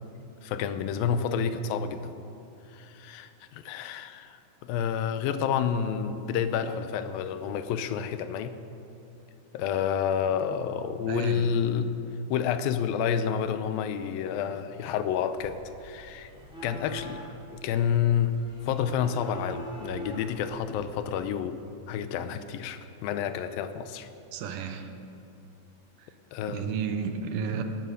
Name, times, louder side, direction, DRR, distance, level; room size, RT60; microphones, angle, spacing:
voice 1, 0.4-2.1 2.7-8.5 9.5-11.9 12.3-16.3 16.6-17.2 17.5-18.3 18.7-21.6 21.9-24.1 26.3-26.7, left 8 dB, 85° left, 11 dB, 2.4 m, -29 dB
voice 2, 11.1-11.5 24.3-24.9 26.0-26.1 26.5-27.6, right 6 dB, 75° right, 6 dB, 2.4 m, -32 dB
sound 1, 15.4-21.3, equal, ahead, 2.7 m, -44 dB
17.5 x 11.0 x 6.4 m, 2.7 s
omnidirectional pair, 4.2 m